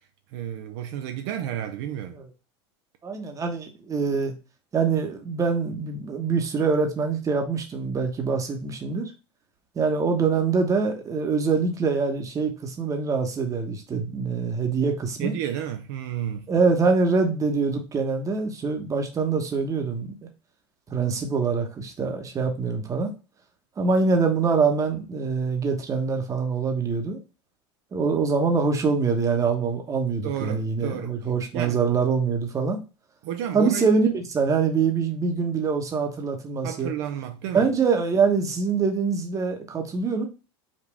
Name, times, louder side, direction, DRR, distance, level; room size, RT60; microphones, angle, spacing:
voice 1, 0.3-2.1 15.2-16.5 30.2-31.1 31.5-31.8 33.2-33.9 36.6-37.7, right 10 dB, 65° right, 0.6 m, -31 dB
voice 2, 3.0-4.3 4.7-9.1 9.7-15.3 16.5-20.1 20.9-23.1 23.8-27.2 27.9-32.8 33.5-36.9 37.5-40.3, right 5 dB, 25° right, 1.1 m, -24 dB
5.1 x 2.6 x 3.4 m
supercardioid pair, 120°, 13 cm